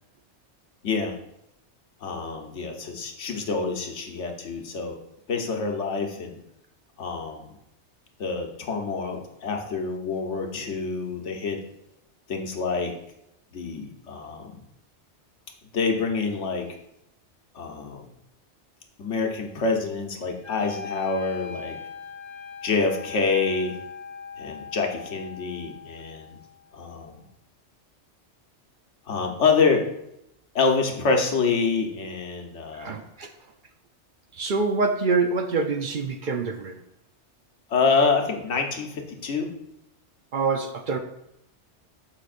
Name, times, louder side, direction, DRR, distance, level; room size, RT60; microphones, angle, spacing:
voice 1, 0.8-1.2 2.0-5.0 5.3-6.4 7.0-7.5 8.2-11.6 12.3-12.9 13.5-14.6 15.7-16.7 17.5-18.1 19.0-21.7 22.6-23.8 24.4-26.4 26.7-27.3 29.1-29.9 30.5-33.0 37.7-39.5, left 4 dB, 85° left, 2 dB, 1.3 m, -26 dB
Wind instrument woodwind instrument, 20.4-26.5, left 6 dB, 75° right, 3.3 m, -40 dB
voice 2, 32.8-33.3 34.3-36.8 40.3-41.0, right 4 dB, 55° right, 5 dB, 0.7 m, -25 dB
12.0 x 4.9 x 2.5 m, 0.83 s
omnidirectional pair, 1.2 m